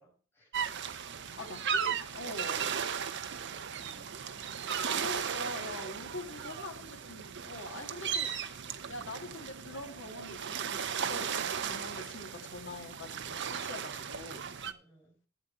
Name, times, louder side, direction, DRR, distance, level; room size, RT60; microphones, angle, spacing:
voice 1, 0.0-1.4 3.3-4.1 14.7-15.2, right 1 dB, 10° left, 5.3 m, -64 dB
sound 1, 0.5-14.7, right 7 dB, 55° right, 0.8 m, -36 dB
voice 2, 1.4-2.8 4.9-14.4, left 2 dB, 60° left, 1.9 m, -44 dB
12.0 x 8.4 x 4.2 m
head